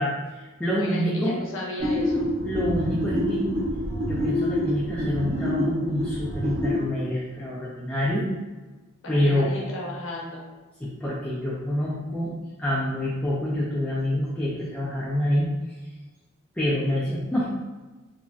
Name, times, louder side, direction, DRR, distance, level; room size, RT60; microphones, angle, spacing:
voice 1, 0.0-1.4 2.4-3.4 4.1-8.3 9.1-9.5 10.8-12.3 12.6-15.5 16.6-17.5, left 1 dB, 5° left, -7 dB, 0.3 m, -26 dB
voice 2, 0.7-2.2 9.0-10.4, left 1 dB, 65° left, -2 dB, 0.7 m, -34 dB
sound 1, 1.8-6.8, equal, 40° right, 0.8 m, -27 dB
3.0 x 2.5 x 2.3 m, 1.2 s
head